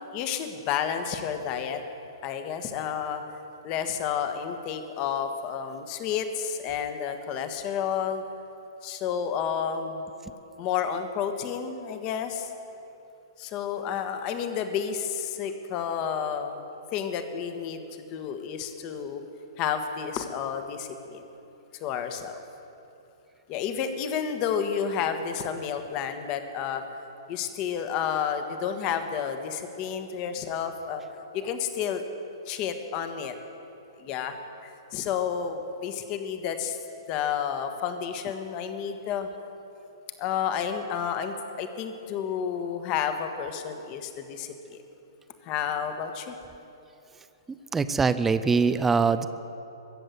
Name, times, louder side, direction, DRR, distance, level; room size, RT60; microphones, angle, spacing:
voice 1, 0.1-1.8 2.2-3.2 3.6-8.2 8.8-10.0 10.6-12.5 13.4-16.6 16.9-17.8 18.1-19.2 19.6-21.2 21.8-22.3 23.5-26.8 27.3-31.0 31.3-32.0 32.5-33.3 34.0-34.4 34.6-36.8 37.1-39.3 40.2-44.8 45.4-46.3, left 8 dB, 35° left, 7 dB, 1.3 m, -30 dB
voice 2, 47.7-49.3, right 5 dB, 10° right, 12 dB, 0.5 m, -23 dB
22.5 x 7.8 x 8.0 m, 2.9 s
figure-of-eight pair, 115°, 2 cm